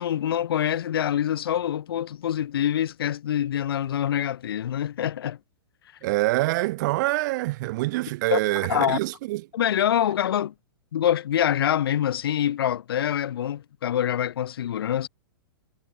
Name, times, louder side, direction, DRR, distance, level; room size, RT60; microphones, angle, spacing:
voice 1, 0.0-5.4 8.3-8.4 8.7-9.0 9.5-10.5 10.9-15.1, left 10 dB, 70° left, 3.0 m, -25 dB
voice 2, 6.0-9.5, right 20 dB, 50° right, 0.8 m, -25 dB
hypercardioid pair, 125°, 13 cm